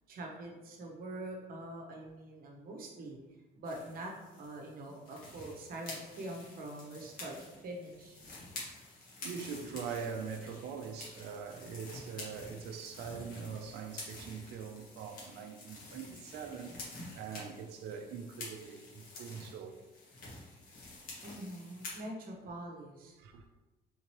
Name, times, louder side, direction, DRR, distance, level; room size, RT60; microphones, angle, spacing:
voice 1, 0.1-3.2 3.5-4.1 4.4-8.2 21.2-23.2, right 1 dB, 60° right, 0.9 m, -44 dB
sound 1, 3.6-22.0, left 2 dB, 55° left, 1.3 m, -49 dB
voice 2, 9.2-16.8 17.2-19.8 23.2-23.4, right 6 dB, 80° right, 0.5 m, -43 dB
3.6 x 2.9 x 3.0 m
cardioid pair, 110°, 17 cm